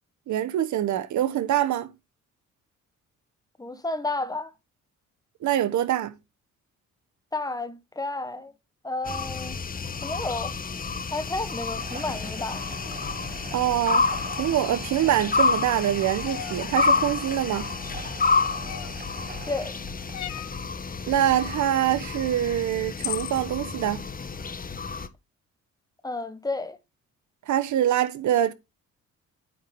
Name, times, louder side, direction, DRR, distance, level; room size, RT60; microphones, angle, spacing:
voice 1, 0.3-1.9 5.4-6.1 13.5-14.1 14.4-17.7 21.1-24.1 27.5-28.5, right 11 dB, 70° right, 1.1 m, -24 dB
voice 2, 3.6-4.5 7.3-8.5 8.8-9.6 10.0-10.5 11.1-12.6 19.4-19.8 26.0-26.8, left 2 dB, 10° left, 1.3 m, -31 dB
sound 1, 9.0-25.1, left 4 dB, 30° left, 1.1 m, -29 dB
sound 2, 11.6-20.6, right 5 dB, 30° right, 1.1 m, -43 dB
sound 3, 16.3-16.6 18.7-19.1 20.1-20.6 22.3-22.4 23.0-23.4, left 12 dB, 65° left, 0.8 m, -35 dB
9.2 x 4.7 x 5.3 m
cardioid pair, 90°, 30 cm